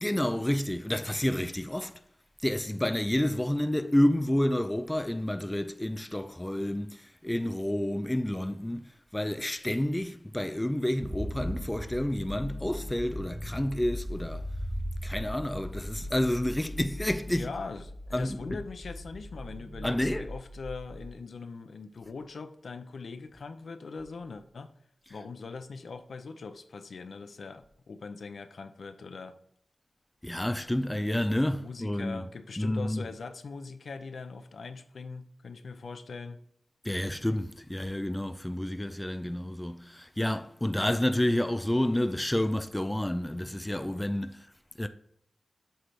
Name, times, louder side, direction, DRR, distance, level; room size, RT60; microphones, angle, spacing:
voice 1, 0.0-2.0 2.4-14.5 15.0-17.5 18.1-18.6 19.8-20.3 30.2-32.2 32.6-33.1 36.8-44.5 44.8-44.9, left 1 dB, 10° left, 0.4 m, -29 dB
sound 1, 11.0-21.1, equal, 5° right, 0.7 m, -39 dB
voice 2, 17.3-24.7 25.1-29.4 31.6-36.4, left 4 dB, 70° left, 0.6 m, -41 dB
7.9 x 3.3 x 5.8 m
wide cardioid pair, 100°, 0 cm